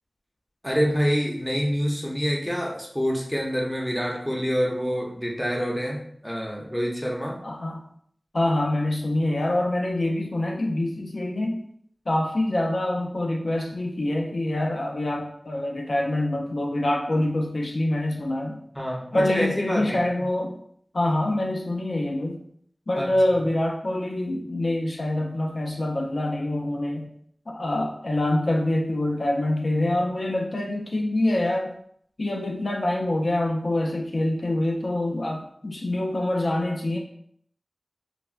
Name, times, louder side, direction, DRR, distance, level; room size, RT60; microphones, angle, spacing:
voice 1, 0.6-7.4 18.7-20.1 23.0-23.2, equal, 5° left, -1 dB, 0.6 m, -27 dB
voice 2, 7.4-7.8 8.3-11.6 12.1-18.6 19.1-20.5 20.9-22.4 22.9-27.1 27.5-31.7 32.2-37.0, left 1 dB, 65° left, 1 dB, 0.4 m, -25 dB
3.2 x 2.1 x 2.4 m, 0.65 s
wide cardioid pair, 60°, 0 cm